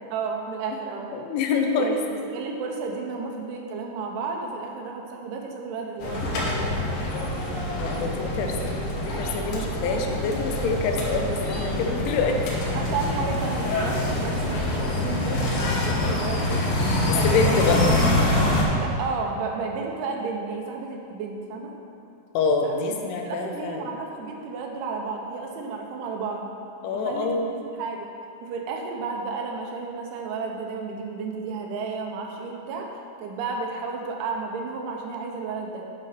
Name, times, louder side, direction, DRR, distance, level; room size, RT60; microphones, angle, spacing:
voice 1, 0.1-1.1 1.8-2.0 2.3-7.0 12.7-16.7 17.1-17.8 18.8-21.7 22.6-26.5 26.9-28.1 28.4-32.9 33.2-35.8, right 4 dB, 85° right, 1 dB, 3.4 m, -32 dB
voice 2, 1.1-2.0 7.8-8.8 9.1-12.4 17.1-17.8 22.3-24.0 26.8-27.5, left 4 dB, 85° left, 4 dB, 3.2 m, -26 dB
sound 1, 6.0-18.6, left 1 dB, 70° left, 3.1 m, -25 dB
sound 2, 14.0-18.4, left 1 dB, 50° right, 0.6 m, -39 dB
10.5 x 5.4 x 5.8 m, 2.5 s
omnidirectional pair, 5.3 m